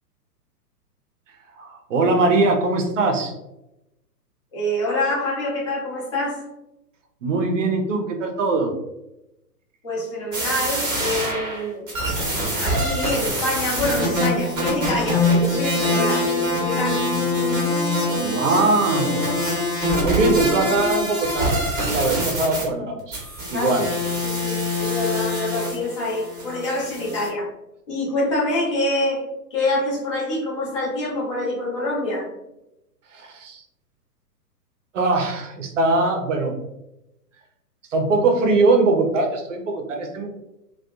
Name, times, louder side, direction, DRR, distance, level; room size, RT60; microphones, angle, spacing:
voice 1, 1.6-3.3 7.2-8.7 18.2-19.3 20.0-21.5 21.8-23.2 23.5-23.9 24.7-24.8 33.1-33.6 34.9-36.6 37.9-40.3, right 3 dB, 50° right, 4 dB, 0.6 m, -21 dB
voice 2, 4.5-6.5 9.8-11.9 12.6-16.3 16.5-17.1 23.5-23.9 24.2-27.5 27.9-29.2 29.5-32.3, left 1 dB, 20° left, -6 dB, 0.4 m, -26 dB
sound 1, 10.3-22.6 23.1-27.3, left 1 dB, 15° right, 0.7 m, -24 dB
sound 2, 13.8-20.9, equal, 45° left, 0.8 m, -31 dB
2.5 x 2.3 x 2.3 m, 0.91 s
figure-of-eight pair, 115°, 48 cm